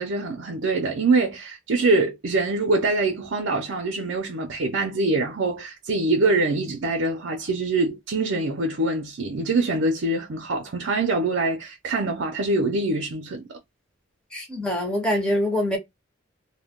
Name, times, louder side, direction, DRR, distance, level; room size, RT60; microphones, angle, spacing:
voice 1, 0.0-13.4, right 3 dB, 70° right, 0.5 m, -24 dB
voice 2, 14.3-15.8, left 1 dB, 5° left, 0.7 m, -24 dB
2.2 x 2.1 x 3.4 m
head